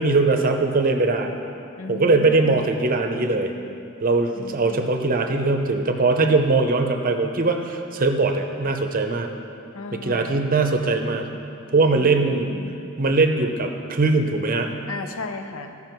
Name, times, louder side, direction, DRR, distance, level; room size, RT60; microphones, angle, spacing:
voice 1, 0.0-1.4 1.9-3.5 4.0-9.3 9.9-11.3 11.7-12.5 13.0-14.7, right 3 dB, 45° right, 5 dB, 0.7 m, -21 dB
voice 2, 1.8-2.8 4.3-4.9 9.7-10.4 12.0-12.9 14.9-15.8, left 3 dB, 80° left, 7 dB, 0.7 m, -35 dB
14.5 x 5.9 x 4.5 m, 2.6 s
head